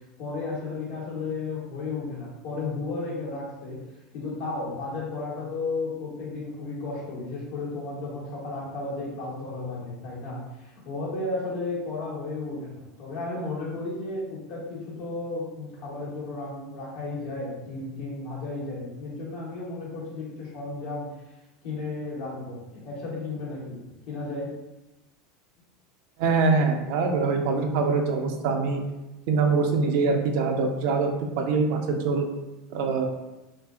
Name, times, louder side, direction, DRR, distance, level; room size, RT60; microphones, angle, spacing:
voice 1, 0.2-3.8 4.1-21.1 21.6-23.8 24.1-24.5, left 3 dB, 70° left, -6 dB, 1.1 m, -33 dB
voice 2, 26.2-28.8 29.3-32.3 32.7-33.1, right 4 dB, 65° right, 3 dB, 0.4 m, -24 dB
2.5 x 2.3 x 2.3 m, 0.99 s
hypercardioid pair, 85°, 0 cm